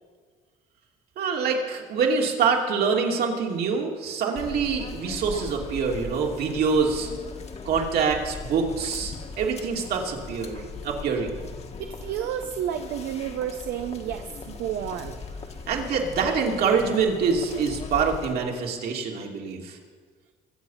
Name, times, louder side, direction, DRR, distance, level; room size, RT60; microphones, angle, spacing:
voice 1, 1.2-7.1 7.6-11.4 15.7-19.8, right 5 dB, 65° right, 0 dB, 2.9 m, -25 dB
sound 1, 4.3-18.3, left 4 dB, 40° left, 1.6 m, -39 dB
voice 2, 11.8-15.2, right 9 dB, 85° right, 6 dB, 0.9 m, -31 dB
22.5 x 8.1 x 5.8 m, 1.5 s
cardioid pair, 110°, 17 cm